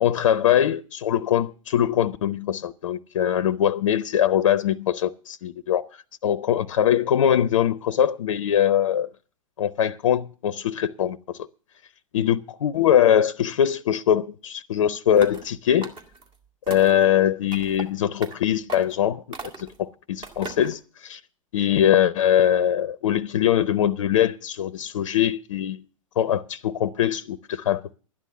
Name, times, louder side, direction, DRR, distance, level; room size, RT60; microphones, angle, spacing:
voice 1, 0.0-9.1 9.6-11.4 12.1-15.9 16.7-19.2 19.6-21.2 21.5-25.8 26.2-28.0, left 10 dB, 65° left, 0.6 m, -22 dB
sound 1, 15.1-15.5 15.8-16.3 16.7-17.0 17.5-17.9 18.2-18.4 18.7-19.0 19.3-19.8 20.2-20.8, right 3 dB, 30° right, 2.1 m, -37 dB
12.0 x 10.0 x 6.9 m
figure-of-eight pair, 100°, 18 cm